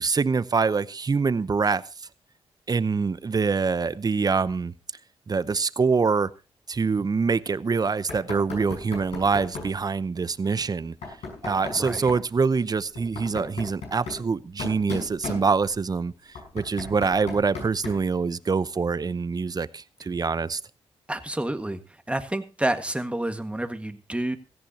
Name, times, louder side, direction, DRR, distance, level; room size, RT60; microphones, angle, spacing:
voice 1, 0.0-1.8 2.7-4.7 5.3-6.3 6.7-10.9 11.4-16.1 16.5-20.6, right 4 dB, 35° right, 0.8 m, -25 dB
Knock, 8.1-9.8 11.0-12.3 12.9-15.8 16.3-18.1, left 3 dB, 80° left, 5.9 m, -37 dB
voice 2, 11.7-12.1 21.1-21.8 22.1-24.4, right 1 dB, 10° right, 1.7 m, -29 dB
17.0 x 14.0 x 2.8 m
cardioid pair, 60°, 11 cm